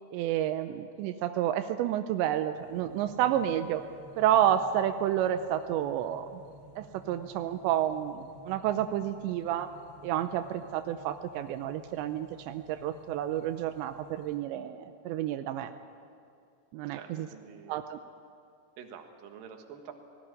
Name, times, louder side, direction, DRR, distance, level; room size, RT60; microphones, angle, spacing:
voice 1, 0.1-3.8 4.2-6.3 6.8-9.7 10.0-15.7 16.7-17.3 17.7-18.0, right 11 dB, 85° right, 9 dB, 2.9 m, -30 dB
sound 1, 2.5-14.4, right 1 dB, 45° right, 3.4 m, -53 dB
voice 2, 16.9-17.8 18.8-19.9, right 7 dB, 60° right, 4 dB, 2.9 m, -47 dB
18.5 x 18.0 x 10.0 m, 2.4 s
omnidirectional pair, 5.1 m